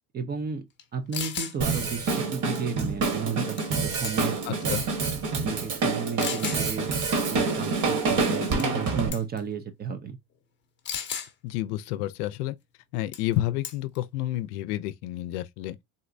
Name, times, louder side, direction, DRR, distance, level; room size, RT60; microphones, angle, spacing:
voice 1, 0.1-0.6 0.9-4.7 5.3-6.9 7.3-10.2, right 6 dB, 25° right, 0.4 m, -33 dB
sound 1, 0.8-0.9 1.1-1.6 3.6-3.8 4.0-4.5 5.2-5.3 6.2-6.6 8.6-8.8 9.1-9.4 10.9-11.3 13.1-13.3 13.6-14.0, left 7 dB, 25° left, 0.7 m, -33 dB
Drum kit, 1.6-9.1, right 4 dB, 40° right, 1.1 m, -27 dB
voice 2, 4.4-4.8 11.4-12.6 12.9-15.8, left 15 dB, 80° left, 0.5 m, -30 dB
3.8 x 2.1 x 2.5 m
supercardioid pair, 100°, 45 cm